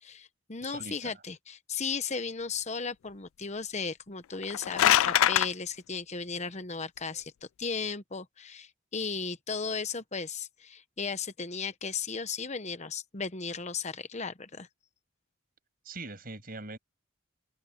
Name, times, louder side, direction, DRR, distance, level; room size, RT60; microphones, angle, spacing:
voice 1, 0.0-7.3 7.6-14.7, left 5 dB, 30° left, 1.0 m, -35 dB
voice 2, 0.6-1.1 15.8-16.8, right 2 dB, 45° right, 6.8 m, -42 dB
sound 1, 4.3-5.5, left 12 dB, 75° left, 0.3 m, -23 dB
head